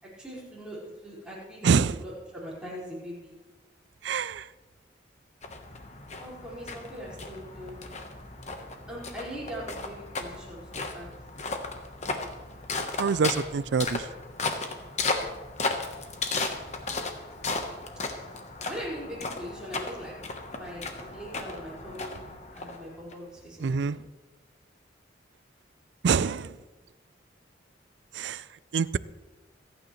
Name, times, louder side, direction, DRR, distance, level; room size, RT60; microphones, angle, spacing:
voice 1, 0.0-3.3 6.2-7.8 8.9-11.1 16.6-17.0 18.6-20.1 20.4-22.1 22.5-23.9, equal, 5° right, 4.9 m, -41 dB
voice 2, 1.6-1.9 4.0-4.5 13.0-14.1 23.6-24.0 26.0-26.6 28.1-28.5 28.7-29.0, right 5 dB, 70° right, 0.4 m, -25 dB
sound 1, 5.4-23.1, left 3 dB, 35° left, 1.1 m, -35 dB
26.5 x 9.2 x 3.2 m
head